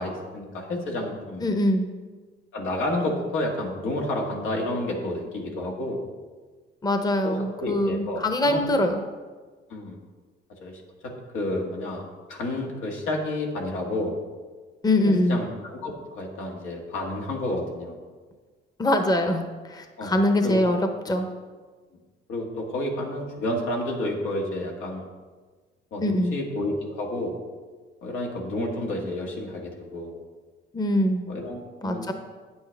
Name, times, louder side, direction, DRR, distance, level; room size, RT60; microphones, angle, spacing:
voice 1, 0.0-1.5 2.5-6.0 7.2-8.7 9.7-10.0 10.6-10.8 11.3-12.0 12.3-14.2 15.0-18.0 20.0-20.1 20.4-20.6 22.3-25.1 25.9-27.3 28.0-30.1 31.3-32.1, left 1 dB, 85° left, -1 dB, 1.7 m, -30 dB
voice 2, 1.4-1.9 6.8-9.0 14.8-15.4 18.8-20.8 21.1-21.3 26.0-26.3 30.7-31.3 31.8-32.1, left 1 dB, 20° left, 6 dB, 0.8 m, -23 dB
8.8 x 8.0 x 3.4 m, 1.4 s
cardioid pair, 90°, 20 cm